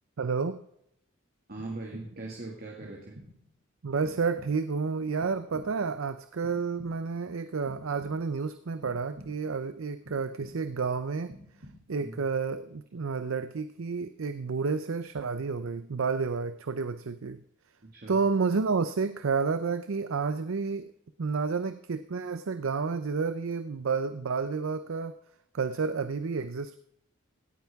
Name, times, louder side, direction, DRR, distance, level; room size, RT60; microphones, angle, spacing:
voice 1, 0.2-0.6 3.8-11.4 11.9-17.4 18.1-20.9 21.2-25.1 25.5-26.8, right 4 dB, 90° right, 12 dB, 0.6 m, -30 dB
voice 2, 1.5-3.2 12.0-12.2 17.8-18.2, right 2 dB, 50° right, -1 dB, 2.2 m, -40 dB
sound 1, 1.6-2.4 2.8-3.5 4.0-4.8 5.2-6.0 6.4-7.2 7.7-8.4 8.8-9.6 10.0-10.9 11.3-12.1, equal, 75° right, 3.0 m, -51 dB
17.0 x 9.1 x 3.6 m, 0.74 s
head